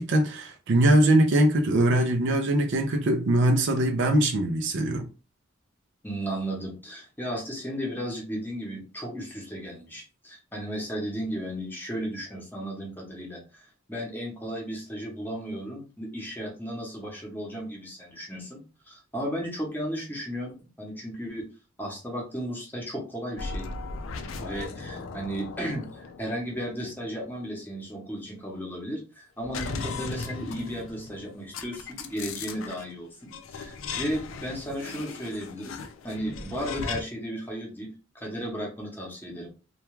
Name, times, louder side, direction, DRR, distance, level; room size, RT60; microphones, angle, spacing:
voice 1, 0.0-5.1, right 1 dB, 60° right, 0.4 m, -22 dB
voice 2, 6.0-18.6 18.9-21.4 21.8-23.7 24.4-39.5, equal, 10° left, 0.8 m, -35 dB
sound 1, 23.4-27.4 29.4-32.9 33.3-37.0, left 4 dB, 70° left, 0.4 m, -38 dB
2.3 x 2.2 x 3.0 m
head